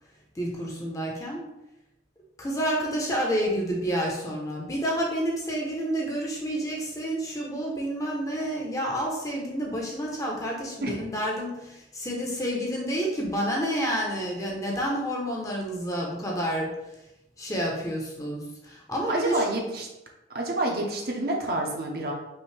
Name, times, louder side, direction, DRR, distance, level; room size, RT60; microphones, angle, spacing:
voice 1, 0.3-1.5 2.4-17.1 17.4-19.4, equal, 20° left, -2 dB, 0.8 m, -29 dB
voice 2, 19.1-19.9 20.3-22.1, right 1 dB, 50° right, 0 dB, 0.8 m, -28 dB
5.5 x 2.7 x 3.3 m, 0.92 s
head